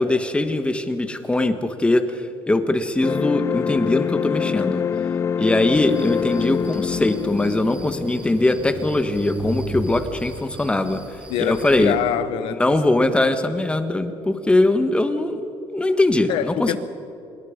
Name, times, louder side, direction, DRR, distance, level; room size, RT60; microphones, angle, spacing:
voice 1, 0.0-4.8 5.4-11.9 12.6-16.8, left 2 dB, 10° left, 1.4 m, -21 dB
sound 1, 3.0-10.0, left 7 dB, 30° left, 0.4 m, -26 dB
sound 2, 5.7-11.9, right 1 dB, 15° right, 3.3 m, -36 dB
voice 2, 11.3-12.6 16.3-16.8, left 11 dB, 85° left, 1.2 m, -25 dB
25.5 x 22.0 x 5.2 m
cardioid pair, 125°, 9 cm